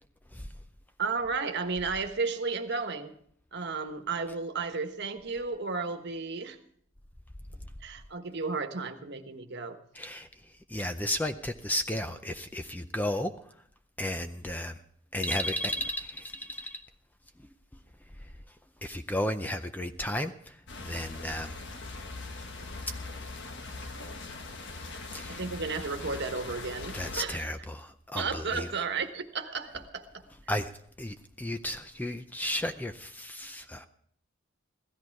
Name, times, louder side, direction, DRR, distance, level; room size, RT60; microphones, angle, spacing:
voice 1, 1.0-3.1 3.5-6.6 7.8-9.8 25.3-27.4 28.1-30.0, right 4 dB, 55° right, 7 dB, 1.3 m, -33 dB
voice 2, 9.9-10.3 10.7-13.3 14.0-14.8 15.1-16.8 18.8-20.6 20.8-21.6 25.1-25.4 26.9-28.7 30.5-30.7 31.0-33.9, left 1 dB, 10° left, 8 dB, 0.5 m, -33 dB
sound 1, 20.7-27.3, left 3 dB, 55° left, 1.3 m, -41 dB
16.5 x 13.5 x 4.7 m, 0.64 s
head